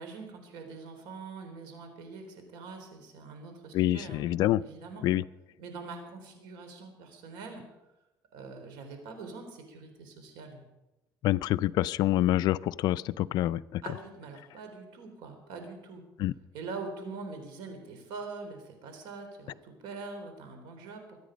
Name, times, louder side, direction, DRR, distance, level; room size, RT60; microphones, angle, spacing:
voice 1, 0.0-4.2 4.6-5.0 5.6-7.6 8.3-10.6 13.8-16.0 16.5-21.2, right 4 dB, 85° right, 5 dB, 3.8 m, -43 dB
voice 2, 3.7-4.6 5.0-5.2 11.2-13.8 16.2-16.3, left 14 dB, 65° left, 17 dB, 0.4 m, -26 dB
23.5 x 9.6 x 5.2 m, 0.97 s
cardioid pair, 135°, 8 cm